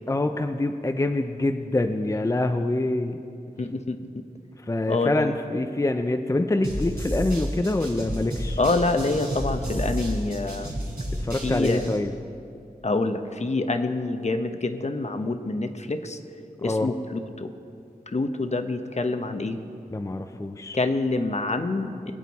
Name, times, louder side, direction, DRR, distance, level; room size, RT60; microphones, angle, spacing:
voice 1, 0.1-3.2 4.6-8.6 11.2-12.1 16.6-16.9 19.9-20.8, left 2 dB, 20° left, 6 dB, 0.5 m, -25 dB
voice 2, 3.6-4.2 4.9-5.3 8.6-10.7 11.4-11.9 12.8-16.2 16.6-17.5 18.1-19.6 20.7-22.1, left 2 dB, 45° left, 8 dB, 0.8 m, -26 dB
sound 1, 6.6-12.0, equal, 80° right, 3.1 m, -31 dB
21.5 x 9.1 x 4.1 m, 2.5 s
wide cardioid pair, 75°, 16 cm